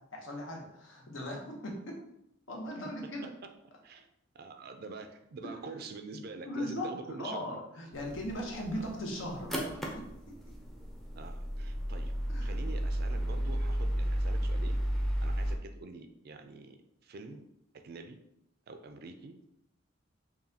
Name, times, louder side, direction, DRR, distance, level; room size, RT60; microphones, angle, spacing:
voice 1, 0.1-2.0 2.5-3.3 5.4-5.6 6.4-10.0 12.3-12.5, left 1 dB, 75° left, -1 dB, 0.9 m, -38 dB
voice 2, 4.3-7.5 8.7-8.9 11.2-12.1 12.4-14.8 15.2-17.4 17.8-18.2 18.7-19.4, right 3 dB, 55° right, 7 dB, 0.4 m, -46 dB
sound 1, 7.9-15.6, equal, ahead, 0.5 m, -33 dB
5.5 x 2.3 x 2.7 m, 0.79 s
head